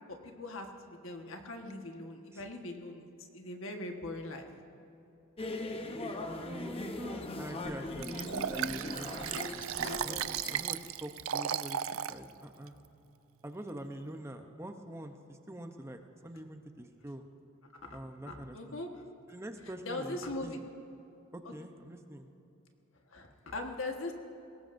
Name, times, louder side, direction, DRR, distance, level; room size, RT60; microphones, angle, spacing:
voice 1, 0.1-4.5 18.3-18.9 19.9-20.6 23.1-24.1, left 2 dB, 75° left, 3 dB, 1.4 m, -40 dB
sound 1, 5.4-10.6, left 2 dB, 30° left, 0.8 m, -39 dB
voice 2, 6.4-11.8 12.1-12.7 13.4-17.2 17.9-18.8 19.3-20.6 21.3-22.3, right 1 dB, 15° right, 6 dB, 0.7 m, -45 dB
Liquid, 8.0-12.2 12.7-12.8, right 9 dB, 85° right, 0.4 m, -35 dB
22.0 x 18.5 x 2.6 m, 2.7 s
head